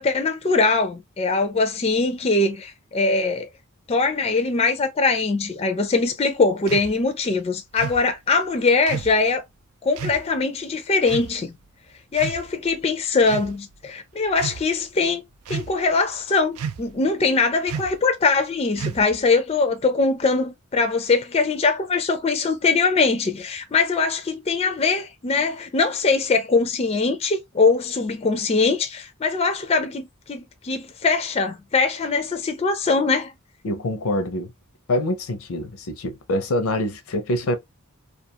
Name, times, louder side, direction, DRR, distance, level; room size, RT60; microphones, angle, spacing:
voice 1, 0.0-3.5 3.9-9.4 9.8-11.5 12.1-15.2 15.5-33.3, left 4 dB, 25° left, 0.4 m, -22 dB
sound 1, 6.7-6.9 7.8-8.0 8.9-9.2 10.0-10.2 11.1-11.3 12.1-12.7 13.2-13.5 14.3-14.6 15.5-15.9 16.6-17.0 17.7-18.0 18.8-19.2, right 6 dB, 85° right, 0.4 m, -32 dB
voice 2, 33.6-34.5 34.9-37.6, left 1 dB, 75° left, 0.6 m, -25 dB
2.4 x 2.3 x 2.7 m
head